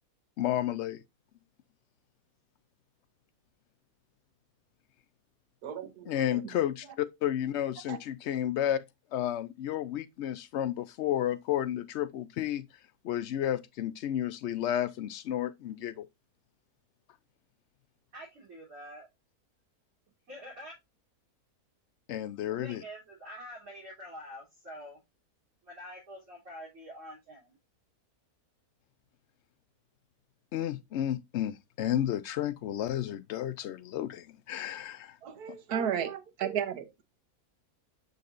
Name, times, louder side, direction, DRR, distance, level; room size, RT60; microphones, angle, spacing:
voice 1, 0.4-1.0 6.1-8.8 9.1-12.6 13.0-16.1 22.1-22.8 30.5-35.2 35.5-35.6, left 11 dB, 70° left, 0.7 m, -32 dB
voice 2, 5.6-6.4 7.9-8.0 35.2-36.9, right 8 dB, 85° right, 1.5 m, -34 dB
voice 3, 18.1-19.1 20.3-20.7 22.5-25.0 25.6-27.6, equal, 55° right, 3.8 m, -46 dB
6.9 x 6.5 x 2.5 m
omnidirectional pair, 1.6 m